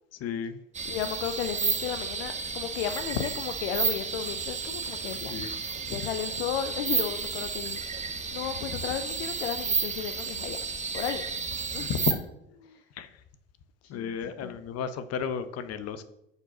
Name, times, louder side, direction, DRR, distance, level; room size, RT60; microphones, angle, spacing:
voice 1, 0.2-0.6 5.3-5.5 5.9-6.0 11.7-12.1 13.0-13.1 13.9-16.1, left 7 dB, 50° left, 12 dB, 0.8 m, -33 dB
sound 1, 0.7-12.1, right 5 dB, 20° right, 1.0 m, -32 dB
voice 2, 0.8-7.8 8.3-10.6 10.9-11.2 11.7-11.9 12.6-12.8 13.9-14.6, left 9 dB, 80° left, 8 dB, 0.6 m, -34 dB
6.6 x 4.6 x 5.9 m, 0.84 s
hypercardioid pair, 70°, 32 cm